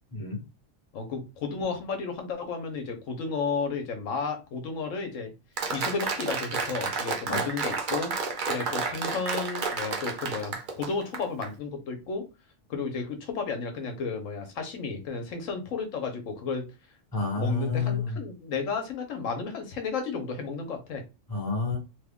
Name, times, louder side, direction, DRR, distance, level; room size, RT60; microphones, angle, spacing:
voice 1, 0.1-0.4 7.3-7.5 17.1-18.1 21.3-21.8, left 4 dB, 20° left, -1 dB, 1.0 m, -29 dB
voice 2, 0.9-5.3 5.7-8.1 8.5-12.2 12.7-16.6 17.4-21.0, left 4 dB, 85° left, 5 dB, 1.2 m, -33 dB
Applause, 5.6-11.5, right 4 dB, 50° right, 0.7 m, -31 dB
3.0 x 2.2 x 3.5 m, 0.27 s
omnidirectional pair, 1.3 m